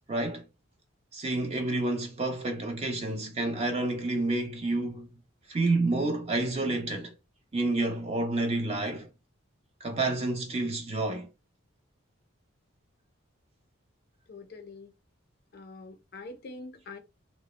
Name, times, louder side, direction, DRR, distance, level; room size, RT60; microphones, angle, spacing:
voice 1, 0.1-0.4 1.1-5.1 5.5-7.1 7.5-9.1 9.8-11.3, right 2 dB, 30° right, 0.4 m, -29 dB
voice 2, 14.3-14.9 15.5-17.0, left 3 dB, 50° left, 0.4 m, -44 dB
2.2 x 2.0 x 2.9 m
head